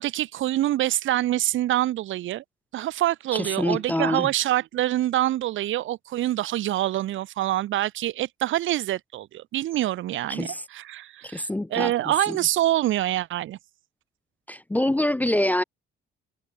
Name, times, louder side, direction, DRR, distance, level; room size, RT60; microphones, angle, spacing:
voice 1, 0.0-2.4 2.7-13.6, right 14 dB, 75° right, 1.2 m, -26 dB
voice 2, 3.3-4.3 10.3-10.6 11.3-11.9 12.3-12.4 14.5-15.6, left 1 dB, 10° left, 0.4 m, -25 dB
cardioid pair, 90°, 20 cm